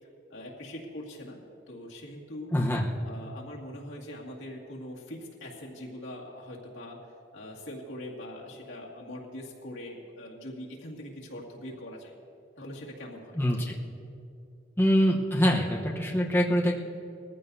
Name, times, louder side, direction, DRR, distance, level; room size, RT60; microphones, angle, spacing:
voice 1, 0.3-1.4 1.7-2.5 3.0-7.1 7.3-12.1 12.6-13.4, left 1 dB, 90° left, -3 dB, 2.2 m, -42 dB
voice 2, 2.5-2.9 13.4-13.7 14.8-16.8, equal, 10° left, -2 dB, 1.0 m, -24 dB
21.0 x 14.5 x 2.7 m, 2.5 s
head